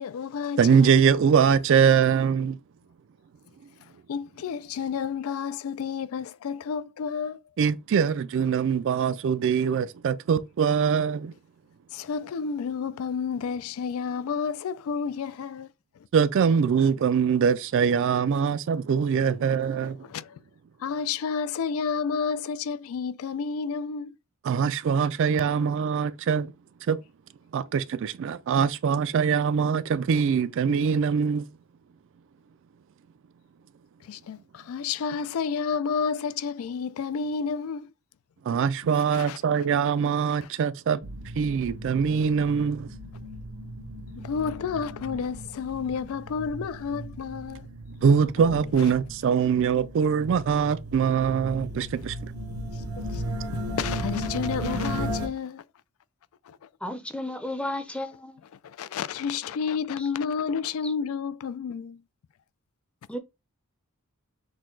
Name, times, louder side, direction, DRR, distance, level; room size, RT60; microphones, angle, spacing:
voice 1, 0.0-1.0 4.1-7.4 11.9-15.7 19.8-20.4 20.8-24.2 34.0-37.9 38.9-39.4 40.4-40.5 44.2-47.6 53.0-53.2 53.5-55.6 56.5-56.6 58.6-62.0, left 6 dB, 65° left, 0.3 m, -31 dB
voice 2, 0.6-2.6 7.6-11.3 16.1-20.0 24.4-26.5 26.9-27.0 27.5-31.4 38.5-41.0 41.4-42.9 48.0-52.3, right 6 dB, 60° right, 0.3 m, -23 dB
sound 1, 41.0-55.3, equal, 85° right, 0.8 m, -36 dB
sound 2, 48.4-50.0, left 1 dB, 40° left, 1.3 m, -43 dB
voice 3, 56.8-58.4 60.0-60.1 60.8-60.9 63.1-63.2, left 1 dB, 5° left, 0.6 m, -33 dB
6.3 x 2.2 x 3.7 m
head